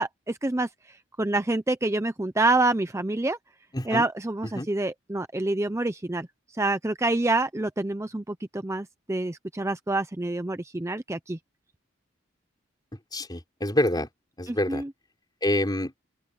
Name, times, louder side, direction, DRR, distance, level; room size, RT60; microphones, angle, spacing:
voice 1, 0.0-3.4 3.8-6.3 6.6-11.4 14.5-14.9, right 2 dB, 15° right, 0.6 m, -27 dB
voice 2, 3.7-4.1 4.6-4.7 13.1-14.1 14.4-14.8 15.4-15.9, left 1 dB, 20° left, 3.7 m, -26 dB
open air
head